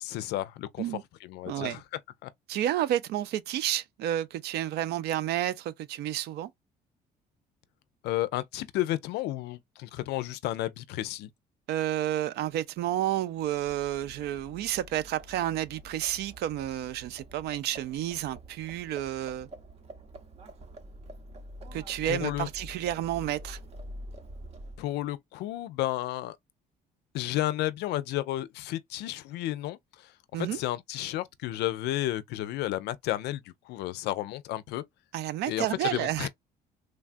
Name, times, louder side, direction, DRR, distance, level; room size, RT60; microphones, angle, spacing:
voice 1, 0.0-1.8 2.2-2.3 8.0-11.3 22.1-22.5 24.8-26.4 27.1-30.1 30.4-34.8 35.5-36.3, left 15 dB, 80° left, 0.4 m, -32 dB
voice 2, 1.5-1.8 2.5-6.5 11.7-19.5 21.7-23.6 30.3-30.6 35.1-36.3, right 12 dB, 75° right, 0.4 m, -30 dB
Livestock farm animals working animals, 13.5-25.0, equal, 40° right, 0.7 m, -47 dB
3.3 x 2.3 x 2.4 m
cardioid pair, 110°, 17 cm